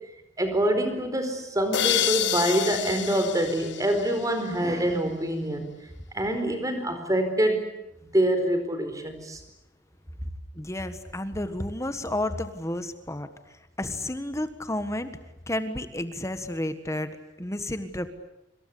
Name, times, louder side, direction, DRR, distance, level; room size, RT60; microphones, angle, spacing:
voice 1, 0.4-5.6 6.1-7.6 8.1-9.4, right 1 dB, 20° right, 7 dB, 4.7 m, -25 dB
sound 1, 1.7-4.6, left 11 dB, 65° left, 1.1 m, -28 dB
voice 2, 10.5-13.3 13.8-15.1 15.5-18.1, left 1 dB, 15° left, 10 dB, 1.5 m, -31 dB
26.5 x 26.5 x 8.6 m, 0.88 s
head